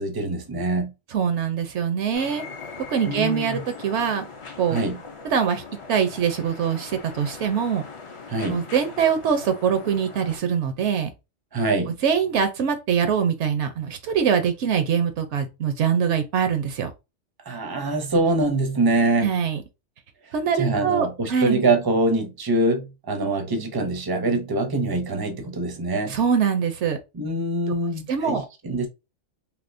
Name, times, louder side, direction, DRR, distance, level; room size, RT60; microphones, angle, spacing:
voice 1, 0.0-0.9 3.1-3.6 4.7-5.0 8.3-8.6 11.5-11.9 17.4-19.3 20.6-26.2 27.1-28.9, right 2 dB, 30° right, 0.4 m, -24 dB
voice 2, 1.1-2.4 2.9-4.2 4.6-4.8 5.2-5.6 5.9-7.8 8.5-11.1 12.0-16.9 19.2-19.6 20.3-21.6 26.1-27.0 28.1-28.5, right 7 dB, 70° right, 0.8 m, -23 dB
sound 1, 2.1-10.4, left 4 dB, 45° left, 0.4 m, -41 dB
3.4 x 2.8 x 2.5 m
omnidirectional pair, 1.3 m